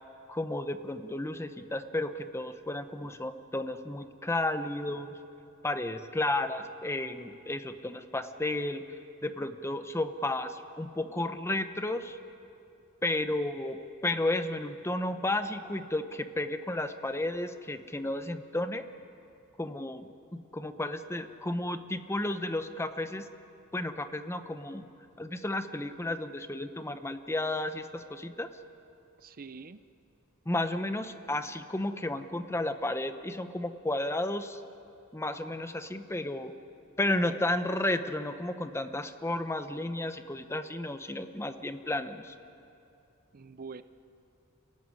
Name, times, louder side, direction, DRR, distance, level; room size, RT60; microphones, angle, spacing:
voice 1, 0.3-5.1 5.6-12.2 13.0-18.8 19.6-23.3 23.7-24.8 25.2-28.5 30.5-34.6 35.1-36.5 37.0-42.3, left 1 dB, 10° left, 9 dB, 0.9 m, -33 dB
voice 2, 29.2-29.8 43.3-43.8, right 4 dB, 45° right, 12 dB, 0.6 m, -44 dB
29.5 x 15.0 x 9.8 m, 2.7 s
head